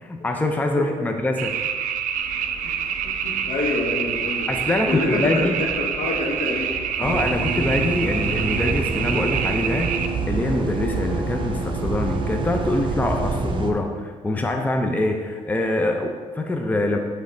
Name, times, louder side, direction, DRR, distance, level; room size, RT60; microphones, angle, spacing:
voice 1, 0.0-1.6 4.5-5.5 7.0-9.9 10.3-17.0, left 2 dB, 10° left, 3 dB, 0.5 m, -24 dB
voice 2, 0.7-1.1 2.6-2.7 3.0-6.7, left 2 dB, 70° left, -1 dB, 1.3 m, -27 dB
sound 1, 1.4-10.1, right 8 dB, 75° right, 0.4 m, -27 dB
sound 2, 2.1-8.8, equal, 35° left, 1.2 m, -38 dB
sound 3, 7.0-13.7, right 3 dB, 35° right, 0.7 m, -26 dB
8.3 x 3.3 x 3.8 m, 1.5 s
cardioid pair, 95°, 14 cm